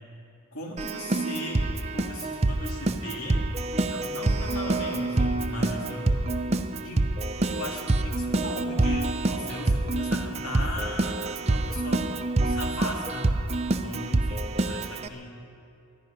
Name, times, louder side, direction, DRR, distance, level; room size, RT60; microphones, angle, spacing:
voice 1, 0.5-3.5 3.8-6.2 6.8-13.3 13.8-15.5, left 1 dB, 85° left, -1 dB, 2.6 m, -37 dB
Keyboard (musical), 0.8-15.1, right 2 dB, 30° right, 0.5 m, -27 dB
20.5 x 13.5 x 5.2 m, 2.5 s
head